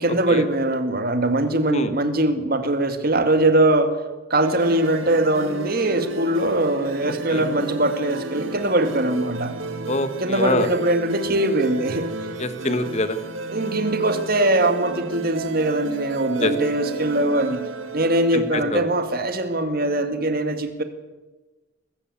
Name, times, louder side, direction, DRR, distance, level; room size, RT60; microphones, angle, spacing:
voice 1, 0.0-4.0 4.3-9.5 10.2-12.1 13.5-17.6 17.9-20.8, right 1 dB, 50° right, 8 dB, 2.1 m, -21 dB
sound 1, 4.4-19.0, right 2 dB, 85° right, 1.6 m, -33 dB
voice 2, 9.9-10.7 12.4-13.2 16.4-16.5 18.3-18.8, left 1 dB, 35° left, 11 dB, 1.5 m, -24 dB
21.0 x 15.0 x 8.6 m, 1.2 s
head